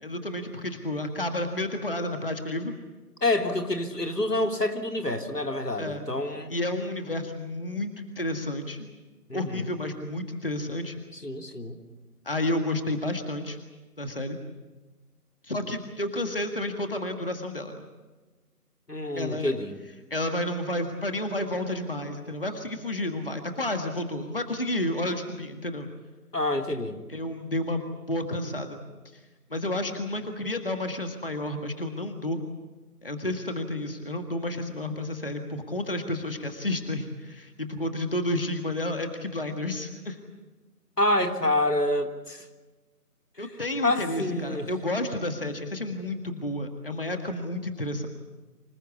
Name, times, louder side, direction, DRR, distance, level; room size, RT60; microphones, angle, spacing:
voice 1, 0.0-2.7 5.8-6.0 6.5-8.9 9.3-11.0 12.3-13.6 14.0-14.4 15.4-17.8 19.2-19.5 20.1-25.9 27.1-28.8 29.5-32.4 33.0-40.2 43.4-48.1, left 1 dB, 35° left, 6 dB, 1.9 m, -31 dB
voice 2, 3.2-6.5 9.3-9.7 11.2-11.8 18.9-19.8 26.3-27.0 41.0-42.4 43.8-44.7, left 1 dB, 90° left, 4 dB, 3.4 m, -27 dB
26.0 x 20.0 x 8.5 m, 1.2 s
figure-of-eight pair, 170°, 47 cm